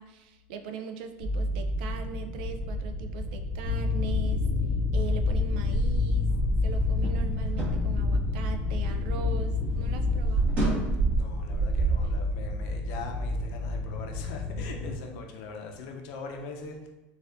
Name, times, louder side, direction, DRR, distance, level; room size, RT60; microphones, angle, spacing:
voice 1, 0.0-4.5 4.9-6.3 6.6-10.5, right 7 dB, 80° right, 6 dB, 0.4 m, -40 dB
sound 1, 1.2-14.9, left 1 dB, 15° left, 0.6 m, -33 dB
sound 2, 3.6-10.2, left 5 dB, 35° left, 1.0 m, -29 dB
sound 3, 4.9-9.3 9.6-12.1, right 3 dB, 30° right, 1.5 m, -29 dB
voice 2, 11.2-16.9, left 4 dB, 65° left, 2 dB, 0.6 m, -41 dB
4.1 x 2.4 x 2.5 m, 1.0 s
cardioid pair, 160°, 5 cm